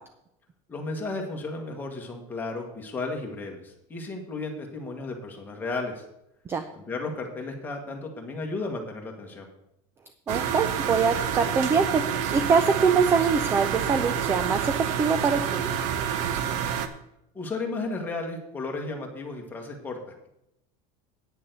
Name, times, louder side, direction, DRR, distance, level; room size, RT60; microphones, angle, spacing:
voice 1, 0.7-6.0 6.7-9.5 17.3-20.0, left 3 dB, 10° left, 1 dB, 1.5 m, -34 dB
voice 2, 10.3-15.6, right 5 dB, 15° right, 10 dB, 0.4 m, -24 dB
sound 1, 10.3-16.9, right 8 dB, 45° right, 0.8 m, -28 dB
9.2 x 6.8 x 6.7 m, 0.83 s
cardioid pair, 175°, 17 cm